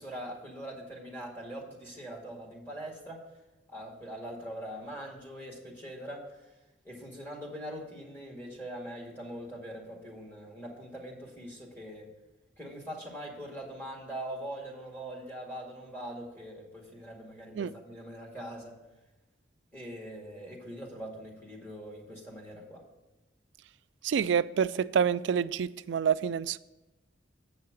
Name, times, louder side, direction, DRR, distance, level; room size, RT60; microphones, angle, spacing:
voice 1, 0.0-3.2 3.7-6.3 6.8-12.1 12.6-18.8 19.7-22.8, right 1 dB, 10° left, 2.0 m, -42 dB
voice 2, 24.0-26.6, right 7 dB, 70° right, 0.3 m, -27 dB
8.1 x 5.7 x 6.2 m
head